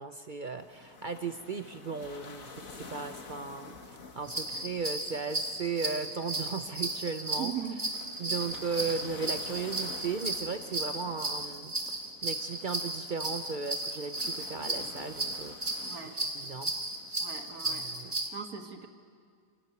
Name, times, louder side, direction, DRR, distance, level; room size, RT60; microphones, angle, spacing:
voice 1, 0.0-7.5 8.2-15.9 16.2-16.7 17.6-18.4, right 5 dB, 45° right, 8 dB, 0.7 m, -36 dB
sound 1, 0.6-18.2, left 4 dB, 60° left, 2.0 m, -50 dB
sound 2, 4.3-18.3, right 2 dB, 25° right, 1.7 m, -35 dB
voice 2, 7.4-7.8 15.8-16.2 17.2-17.9 18.3-18.9, right 8 dB, 75° right, 5 dB, 2.0 m, -38 dB
28.5 x 12.5 x 9.4 m, 2.2 s
omnidirectional pair, 1.6 m